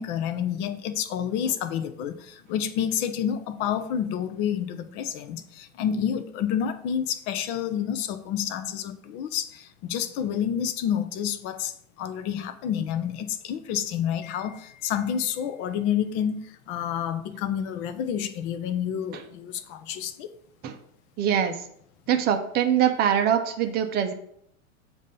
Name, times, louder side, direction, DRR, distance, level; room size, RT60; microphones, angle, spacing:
voice 1, 0.0-20.3, left 9 dB, 30° left, 0.4 m, -29 dB
voice 2, 21.2-21.7 22.1-24.1, right 9 dB, 25° right, 0.6 m, -23 dB
7.1 x 2.7 x 5.5 m
hypercardioid pair, 125°, 41 cm